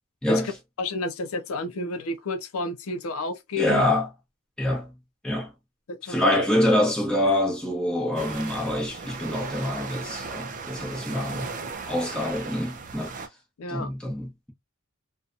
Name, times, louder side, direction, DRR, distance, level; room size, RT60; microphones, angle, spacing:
voice 1, 0.8-3.8 5.9-6.3 13.6-13.9, left 2 dB, 80° left, 0.5 m, -31 dB
voice 2, 3.6-4.1 4.6-4.9 5.2-5.5 6.1-11.5 11.9-13.1 13.7-14.5, left 1 dB, 5° left, 0.8 m, -25 dB
sound 1, 8.2-13.3, right 4 dB, 40° right, 0.5 m, -36 dB
2.7 x 2.2 x 2.4 m
head